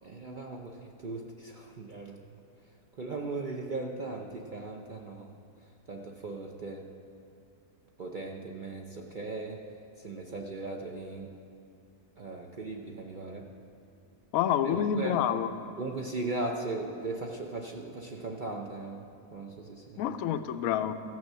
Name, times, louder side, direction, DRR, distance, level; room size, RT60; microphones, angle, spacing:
voice 1, 0.0-2.2 3.0-5.3 5.9-6.9 8.0-9.6 10.0-11.3 12.2-13.5 14.6-15.2 15.8-19.0 19.3-20.0, right 2 dB, 50° right, 1 dB, 0.6 m, -38 dB
voice 2, 14.3-15.5 20.0-20.9, left 9 dB, 70° left, 9 dB, 0.9 m, -28 dB
15.0 x 6.2 x 7.3 m, 2.4 s
omnidirectional pair, 1.7 m